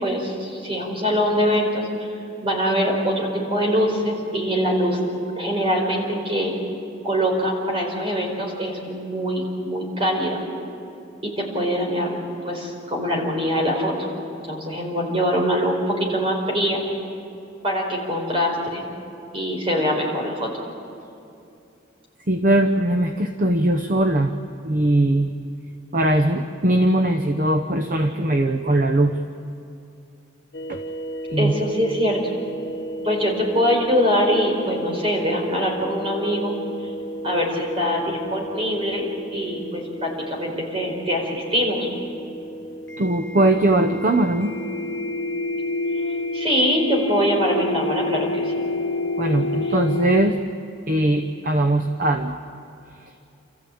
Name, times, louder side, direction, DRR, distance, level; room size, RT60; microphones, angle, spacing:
voice 1, 0.0-2.1 2.4-5.0 5.4-6.5 7.0-10.4 11.2-12.2 12.4-13.9 14.3-16.8 17.6-18.9 19.3-20.5 31.4-32.2 33.0-36.5 36.8-36.9 37.2-41.9 46.3-48.7, equal, 30° right, 0 dB, 4.8 m, -23 dB
voice 2, 22.3-24.3 24.6-25.3 25.9-29.2 30.7-30.8 31.3-31.5 43.0-44.5 49.2-50.4 50.9-52.4, right 1 dB, 45° right, 7 dB, 0.9 m, -20 dB
sound 1, 30.5-50.3, left 1 dB, 65° left, 0.9 m, -30 dB
29.5 x 14.5 x 8.7 m, 2.7 s
head